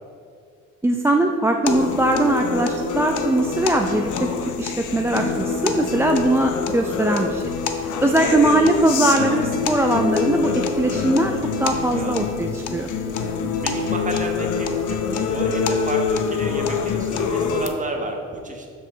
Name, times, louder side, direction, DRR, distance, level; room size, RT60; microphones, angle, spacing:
voice 1, 0.8-4.1 4.6-7.4 7.8-12.9, right 1 dB, 10° right, 2 dB, 0.4 m, -21 dB
sound 1, 1.7-17.7, left 5 dB, 75° left, 0.8 m, -25 dB
voice 2, 11.6-12.2 13.6-18.7, right 2 dB, 25° right, 1 dB, 1.4 m, -32 dB
12.5 x 4.8 x 3.9 m, 2.2 s
cardioid pair, 90°, 30 cm